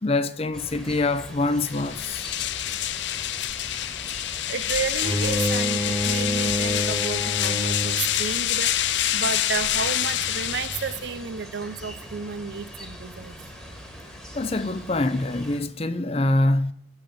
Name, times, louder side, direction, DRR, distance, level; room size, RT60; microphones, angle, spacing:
voice 1, 0.0-2.3 14.3-16.7, left 2 dB, 35° left, 0.6 m, -24 dB
sound 1, 0.5-15.6, equal, ahead, 1.6 m, -42 dB
sound 2, 1.6-11.2, left 12 dB, 80° left, 0.5 m, -27 dB
voice 2, 4.5-8.7 9.1-13.3, right 5 dB, 75° right, 0.7 m, -32 dB
Bowed string instrument, 5.0-8.2, equal, 15° right, 1.9 m, -27 dB
8.5 x 6.5 x 7.4 m
head